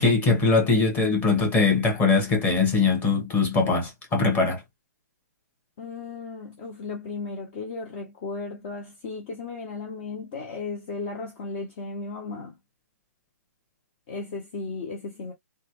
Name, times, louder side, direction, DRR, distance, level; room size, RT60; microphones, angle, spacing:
voice 1, 0.0-4.6, left 4 dB, 20° left, 1.6 m, -21 dB
voice 2, 5.8-12.5 14.1-15.3, left 3 dB, 35° left, 0.9 m, -35 dB
3.1 x 2.3 x 3.1 m
figure-of-eight pair, 130°, 9 cm